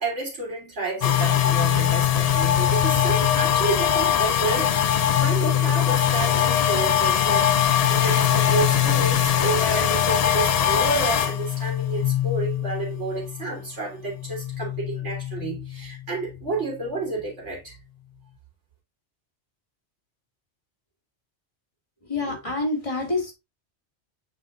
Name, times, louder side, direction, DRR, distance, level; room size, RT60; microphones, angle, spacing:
voice 1, 0.0-17.7, right 3 dB, 90° right, 3.3 m, -30 dB
sound 1, 1.0-13.7 14.0-16.5, left 10 dB, 65° left, 0.3 m, -22 dB
voice 2, 22.0-23.3, left 2 dB, 30° left, 2.2 m, -27 dB
7.4 x 5.6 x 2.4 m
omnidirectional pair, 1.2 m